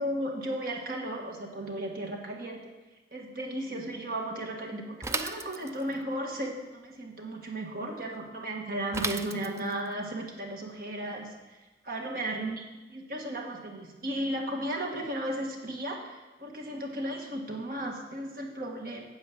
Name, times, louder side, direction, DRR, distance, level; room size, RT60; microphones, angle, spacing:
voice 1, 0.0-2.7 3.1-11.6 11.8-12.6 12.9-19.0, right 1 dB, 55° right, 0 dB, 1.6 m, -35 dB
Bicycle / Mechanisms, 5.0-6.0 8.9-9.9, right 3 dB, 15° right, 0.4 m, -34 dB
9.2 x 7.8 x 7.4 m, 1.1 s
head